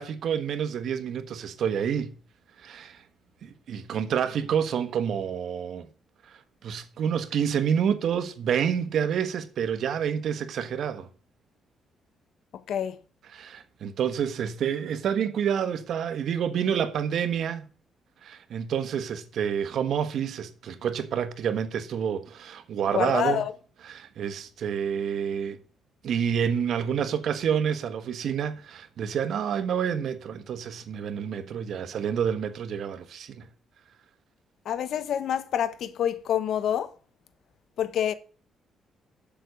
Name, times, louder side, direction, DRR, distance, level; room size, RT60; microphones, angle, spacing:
voice 1, 0.0-2.2 2.6-3.0 3.4-5.9 6.3-11.1 13.3-17.6 18.2-23.4 23.9-25.6 26.0-33.5, right 8 dB, 65° right, 1.4 m, -28 dB
voice 2, 12.5-13.0 22.9-23.5 34.6-36.9 37.8-38.1, left 9 dB, 70° left, 1.1 m, -27 dB
11.5 x 7.8 x 6.4 m
cardioid pair, 90°, 0 cm